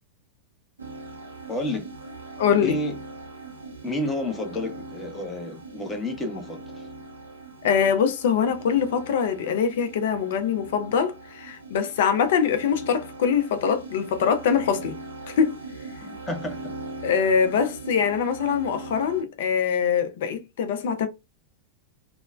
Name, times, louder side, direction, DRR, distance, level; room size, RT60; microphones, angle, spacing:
sound 1, 0.8-19.2, right 2 dB, 80° right, 0.7 m, -40 dB
voice 1, 1.5-1.9 2.6-2.9 3.8-6.9 16.0-16.7, left 1 dB, 15° left, 0.8 m, -30 dB
voice 2, 2.4-2.7 7.6-15.0 15.3-15.6 17.0-21.1, left 7 dB, 55° left, 0.4 m, -23 dB
3.0 x 2.0 x 2.3 m
figure-of-eight pair, 90°, 0 cm